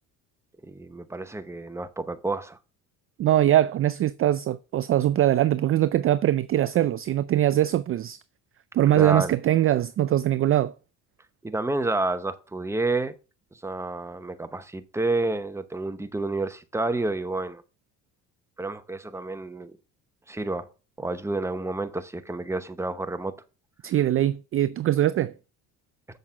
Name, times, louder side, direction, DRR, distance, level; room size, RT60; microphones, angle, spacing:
voice 1, 0.6-2.6 8.9-9.3 11.4-13.1 13.6-17.6 18.6-19.7 20.3-20.7 21.0-23.3, right 2 dB, 5° right, 0.8 m, -29 dB
voice 2, 3.2-8.2 8.7-10.7 23.8-25.3, right 12 dB, 35° right, 0.4 m, -22 dB
7.4 x 6.5 x 3.7 m
supercardioid pair, 95°, 40 cm